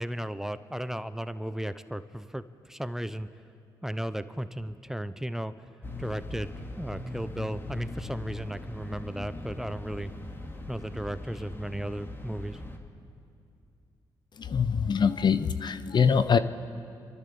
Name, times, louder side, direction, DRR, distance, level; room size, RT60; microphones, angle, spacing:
voice 1, 0.0-3.3 3.8-5.5 6.0-10.1 10.7-12.6, right 1 dB, 5° right, 12 dB, 0.8 m, -35 dB
sound 1, 5.8-12.8, left 2 dB, 25° left, 2.7 m, -40 dB
voice 2, 14.4-16.4, left 6 dB, 50° left, 12 dB, 0.8 m, -24 dB
30.0 x 13.0 x 7.0 m, 2.6 s
supercardioid pair, 60°, 9 cm